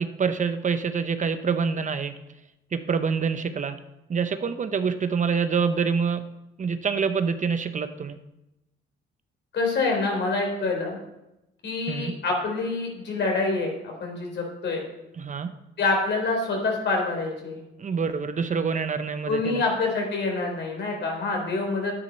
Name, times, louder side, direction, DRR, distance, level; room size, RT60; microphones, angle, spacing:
voice 1, 0.0-2.2 2.7-3.8 4.1-6.2 6.6-8.2 11.9-12.1 15.2-15.5 17.8-19.6, right 5 dB, 40° right, 10 dB, 0.9 m, -26 dB
voice 2, 9.5-11.0 11.6-14.9 15.8-17.6 19.3-22.0, left 3 dB, 60° left, 1 dB, 4.1 m, -26 dB
10.0 x 9.8 x 5.4 m, 0.91 s
cardioid pair, 90°, 20 cm